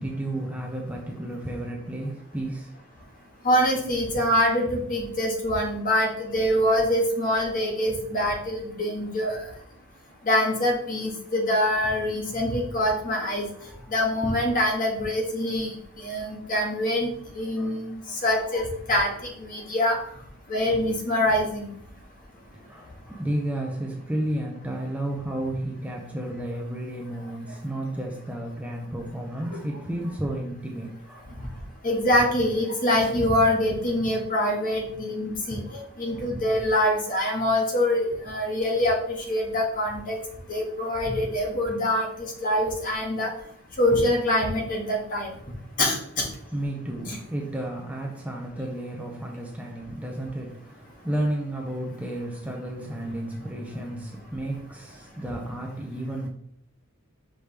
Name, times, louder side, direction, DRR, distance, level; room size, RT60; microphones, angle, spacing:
voice 1, 0.0-2.8 13.4-13.9 17.6-17.8 22.5-31.6 46.5-56.3, right 1 dB, 5° right, 0.7 m, -32 dB
voice 2, 3.4-9.4 10.2-13.4 13.9-15.7 16.0-17.1 17.3-19.1 19.5-20.0 20.5-21.7 31.8-35.6 36.0-40.2 40.5-43.3 43.8-45.3 45.8-46.2 47.1-47.2, left 1 dB, 40° left, 1.6 m, -24 dB
6.1 x 5.1 x 3.3 m
head